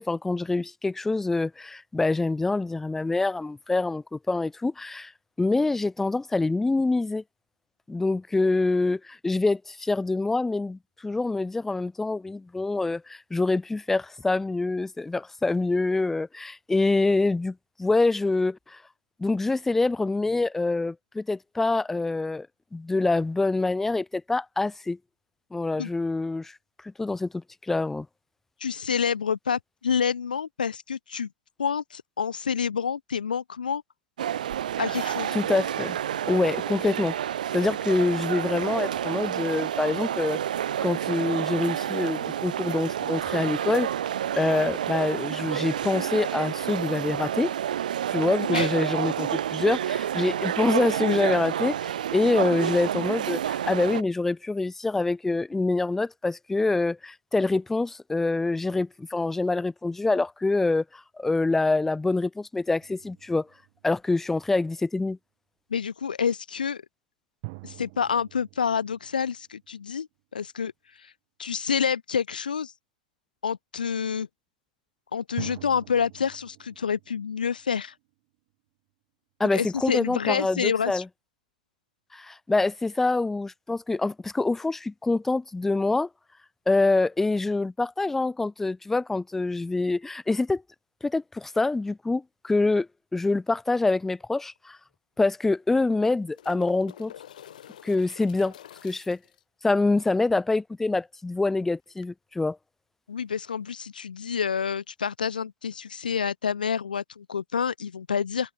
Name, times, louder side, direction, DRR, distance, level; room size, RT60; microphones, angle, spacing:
voice 1, 0.0-5.1 5.4-7.2 7.9-18.8 19.2-22.5 22.7-25.0 25.5-26.5 26.8-28.1 35.3-36.0 36.2-37.1 37.5-40.4 40.8-43.9 44.4-47.5 48.1-63.5 63.8-65.2 79.4-81.0 82.1-86.1 86.7-90.6 91.0-94.8 95.2-97.1 97.8-98.5 98.8-99.2 99.6-102.6, left 3 dB, 5° left, 1.0 m, -26 dB
voice 2, 28.6-31.3 31.6-33.8 34.8-35.4 48.5-48.7 65.7-66.8 67.6-70.1 70.3-70.7 71.0-71.1 71.4-72.7 73.4-74.3 75.1-77.9 79.5-81.0 103.1-108.5, left 6 dB, 85° left, 0.4 m, -28 dB
sound 1, 34.2-54.0, right 10 dB, 70° right, 0.9 m, -29 dB
sound 2, 62.8-64.5 67.4-70.1 75.4-78.4, right 31 dB, 45° right, 6.4 m, -45 dB
sound 3, 94.2-94.3 94.6-94.7 95.7-99.4 102.0-102.1, left 10 dB, 65° left, 3.5 m, -48 dB
hypercardioid pair, 120°, 5 cm